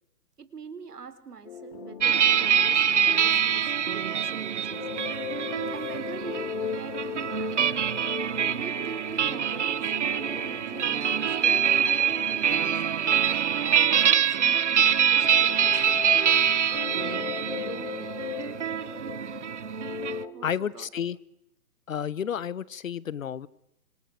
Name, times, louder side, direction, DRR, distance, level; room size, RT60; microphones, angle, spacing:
voice 1, 0.4-4.9 5.7-7.8 8.5-11.6 11.9-13.0 13.6-16.4 17.0-18.4 20.3-20.9, right 5 dB, 90° right, 13 dB, 3.7 m, -44 dB
sound 1, 1.4-14.7 15.2-20.3, left 7 dB, 40° left, 5.0 m, -38 dB
sound 2, 2.0-20.2, right 8 dB, 50° right, 0.9 m, -25 dB
voice 2, 20.4-21.2 21.9-23.5, left 8 dB, 60° left, 21 dB, 1.1 m, -31 dB
26.5 x 26.5 x 6.6 m, 0.80 s
hypercardioid pair, 165°, 45 cm